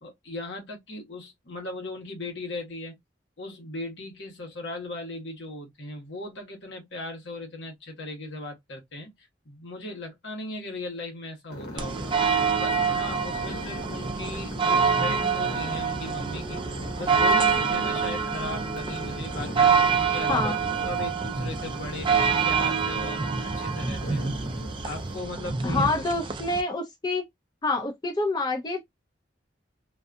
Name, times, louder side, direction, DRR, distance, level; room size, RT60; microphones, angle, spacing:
voice 1, 0.0-2.9 3.4-12.1 12.5-16.7 17.0-20.6 20.8-22.1 22.4-24.3 24.8-26.0, left 2 dB, 70° left, 1.2 m, -38 dB
sound 1, 11.5-25.2, left 1 dB, 55° left, 1.1 m, -41 dB
sound 2, 11.8-26.6, right 5 dB, 25° right, 0.4 m, -26 dB
voice 2, 25.6-27.2 27.6-28.8, left 2 dB, 20° left, 0.5 m, -27 dB
2.6 x 2.3 x 2.5 m
head